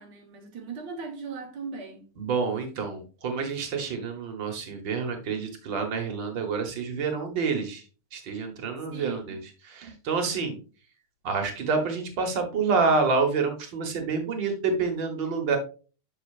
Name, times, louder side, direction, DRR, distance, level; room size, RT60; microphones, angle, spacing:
voice 1, 0.0-2.0 8.9-9.4, right 5 dB, 90° right, 0.9 m, -38 dB
voice 2, 2.2-7.8 8.1-9.4 9.7-10.6 11.2-15.6, right 4 dB, 60° right, 1.2 m, -28 dB
8.1 x 6.6 x 2.4 m
omnidirectional pair, 4.0 m